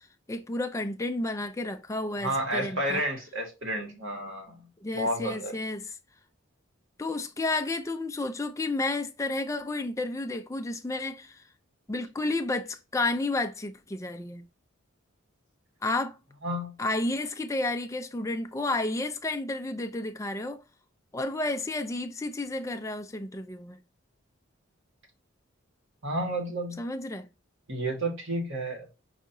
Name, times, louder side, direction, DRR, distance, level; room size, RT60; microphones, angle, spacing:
voice 1, 0.0-3.0 4.8-5.9 7.0-11.4 11.9-14.5 15.8-16.2 16.8-20.6 21.1-23.8 26.8-27.3, left 2 dB, 15° left, 0.4 m, -31 dB
voice 2, 2.2-4.6 4.9-5.5 16.4-16.7 26.0-26.8 27.7-28.8, right 1 dB, 60° right, 1.5 m, -31 dB
5.6 x 2.8 x 2.6 m
head